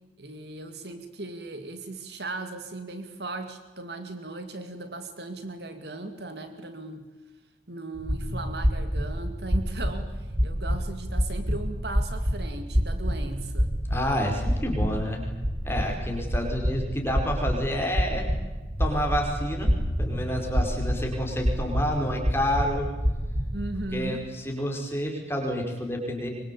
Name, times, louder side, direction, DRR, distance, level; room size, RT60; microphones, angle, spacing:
voice 1, 0.2-7.1 7.7-13.8 23.5-24.3, right 2 dB, 65° right, 7 dB, 2.4 m, -37 dB
sound 1, 8.0-23.9, equal, 50° right, 3.3 m, -28 dB
voice 2, 13.9-15.2 15.6-18.3 18.8-19.7 20.0-22.9 23.9-26.3, equal, 15° left, 1 dB, 5.3 m, -29 dB
24.0 x 24.0 x 8.6 m, 1.2 s
head